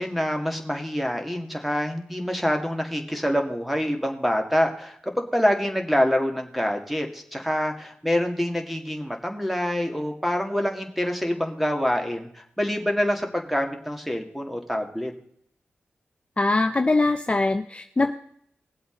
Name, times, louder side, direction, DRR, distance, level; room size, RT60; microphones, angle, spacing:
voice 1, 0.0-15.1, equal, ahead, 3 dB, 2.0 m, -26 dB
voice 2, 16.4-18.1, left 2 dB, 30° left, 6 dB, 0.6 m, -22 dB
20.0 x 7.8 x 3.8 m, 0.67 s
wide cardioid pair, 85°, 4 cm